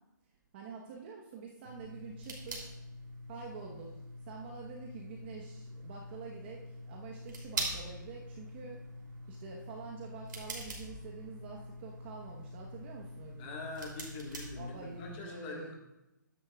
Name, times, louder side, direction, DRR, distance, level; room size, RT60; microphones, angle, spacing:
voice 1, 0.5-2.7 3.3-8.8 9.3-13.6 14.6-15.7, right 5 dB, 30° right, -1 dB, 1.0 m, -47 dB
sound 1, 1.6-15.2, right 1 dB, 70° right, 2.8 m, -44 dB
voice 2, 13.4-15.8, left 3 dB, 25° left, 0 dB, 1.5 m, -43 dB
12.5 x 9.4 x 2.3 m, 0.92 s
hypercardioid pair, 155°, 11 cm